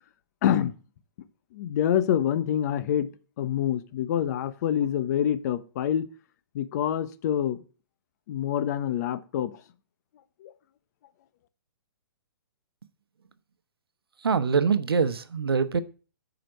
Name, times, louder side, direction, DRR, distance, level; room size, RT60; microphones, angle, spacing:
voice 1, 0.4-0.7 1.5-3.1 3.4-6.0 6.5-7.6 8.3-9.5 10.4-10.5, left 10 dB, 45° left, 0.9 m, -26 dB
voice 2, 14.2-15.8, right 5 dB, 85° right, 0.9 m, -24 dB
7.7 x 5.1 x 6.3 m
hypercardioid pair, 140°, 12 cm